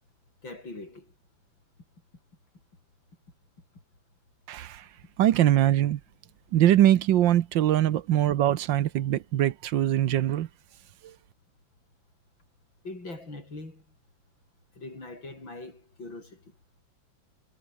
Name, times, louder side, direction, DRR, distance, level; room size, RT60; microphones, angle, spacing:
voice 1, 0.4-1.1 12.8-13.8 14.8-16.4, left 2 dB, 75° left, 8.3 m, -41 dB
voice 2, 4.5-4.8 5.2-6.0 6.5-10.5, right 12 dB, 75° right, 1.5 m, -22 dB
omnidirectional pair, 2.1 m